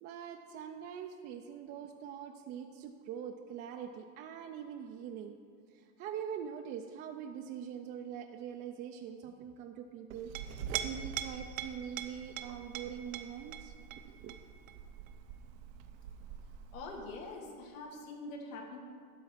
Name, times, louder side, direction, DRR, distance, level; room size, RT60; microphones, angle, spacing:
voice 1, 0.0-5.4 5.7-13.7 14.1-14.3, right 8 dB, 30° right, 4 dB, 0.3 m, -43 dB
Chink clink, 10.1-17.2, right 9 dB, 85° right, 0.9 m, -43 dB
voice 2, 16.7-18.8, left 2 dB, 90° left, 1 dB, 2.0 m, -44 dB
12.0 x 4.6 x 7.3 m, 2.4 s
supercardioid pair, 140°, 39 cm